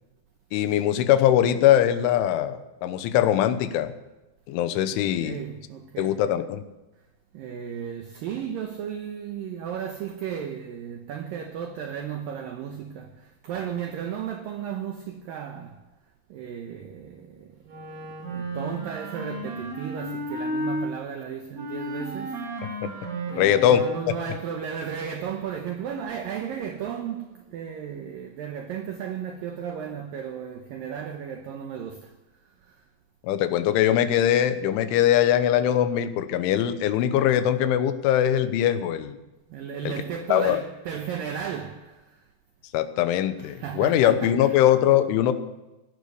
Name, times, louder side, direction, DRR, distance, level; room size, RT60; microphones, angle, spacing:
voice 1, 0.5-3.9 4.5-5.4 6.0-6.6 22.8-22.9 23.4-23.8 33.2-39.2 39.9-40.0 40.3-40.6 42.7-45.3, left 11 dB, 85° left, 3.5 m, -21 dB
voice 2, 4.9-6.4 7.3-15.9 16.3-17.6 17.9-22.5 23.3-32.2 32.4-32.8 39.5-42.3 43.4-44.6, right 8 dB, 80° right, 2.0 m, -35 dB
Wind instrument woodwind instrument, 17.6-20.9 21.5-24.3, right 1 dB, 40° right, 4.4 m, -33 dB
17.5 x 12.0 x 6.8 m
omnidirectional pair, 5.4 m